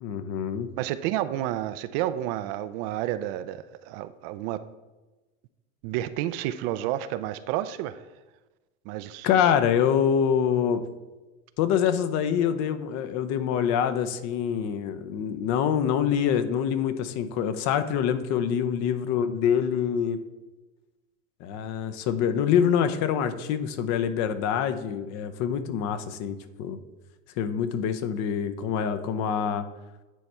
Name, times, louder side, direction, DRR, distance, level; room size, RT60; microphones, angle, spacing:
voice 1, 0.0-0.7 9.2-10.8 11.6-20.2 21.4-26.8 27.4-29.6, left 8 dB, 50° left, 0.7 m, -25 dB
voice 2, 0.8-4.6 5.8-8.0 8.9-9.3, right 13 dB, 55° right, 0.4 m, -30 dB
9.2 x 3.4 x 4.3 m
supercardioid pair, 115°, 37 cm